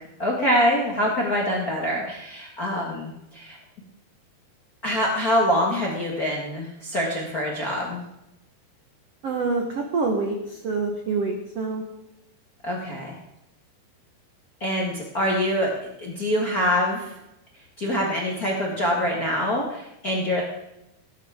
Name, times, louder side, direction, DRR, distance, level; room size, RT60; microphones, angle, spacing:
voice 1, 0.2-3.6 4.8-8.0 12.6-13.2 14.6-15.7 16.0-17.1 17.8-20.4, equal, 55° left, -2 dB, 0.9 m, -25 dB
voice 2, 9.2-11.8, right 4 dB, 75° right, 2 dB, 1.4 m, -26 dB
19.0 x 10.0 x 3.6 m, 0.86 s
omnidirectional pair, 4.8 m